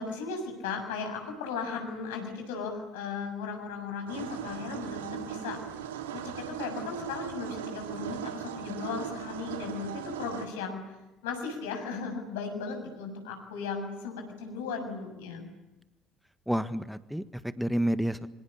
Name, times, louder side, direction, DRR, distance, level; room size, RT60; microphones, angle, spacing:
voice 1, 0.0-5.6 6.1-10.9 11.2-15.5, left 5 dB, 70° left, 4 dB, 6.8 m, -36 dB
sound 1, 4.1-10.5, right 9 dB, 75° right, 2.5 m, -39 dB
voice 2, 16.5-18.3, equal, ahead, 13 dB, 1.6 m, -29 dB
26.5 x 25.5 x 8.7 m, 0.99 s
figure-of-eight pair, 55°, 0 cm